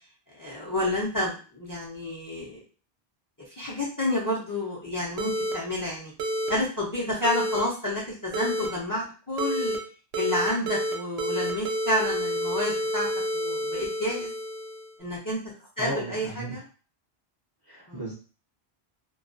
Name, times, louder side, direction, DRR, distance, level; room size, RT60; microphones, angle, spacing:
voice 1, 0.4-2.6 3.6-6.1 6.5-9.7 10.1-13.1 13.3-14.3 15.0-15.4 15.8-16.6 17.9-18.0, left 1 dB, 25° left, -4 dB, 0.6 m, -29 dB
sound 1, 5.2-5.5 6.2-6.5 7.2-7.6 8.3-8.7 9.4-9.8 10.1-10.9 11.2-14.9, equal, 85° right, 0.9 m, -29 dB
voice 2, 15.8-16.6 17.7-18.1, right 1 dB, 30° right, -5 dB, 0.5 m, -35 dB
2.3 x 2.2 x 2.5 m, 0.37 s
omnidirectional pair, 1.0 m